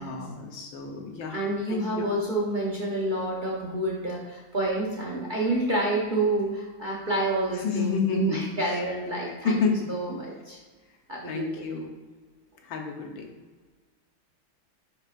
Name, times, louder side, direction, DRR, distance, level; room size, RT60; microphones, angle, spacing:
voice 1, 0.0-1.4 1.7-2.1 7.6-8.4 8.7-8.8 9.4-9.9 11.3-11.9 12.6-13.3, left 5 dB, 70° left, 2 dB, 1.6 m, -29 dB
voice 2, 1.3-9.6 9.9-10.6 11.1-11.5, right 1 dB, 50° right, -4 dB, 0.5 m, -28 dB
10.5 x 4.3 x 2.5 m, 1.3 s
omnidirectional pair, 2.3 m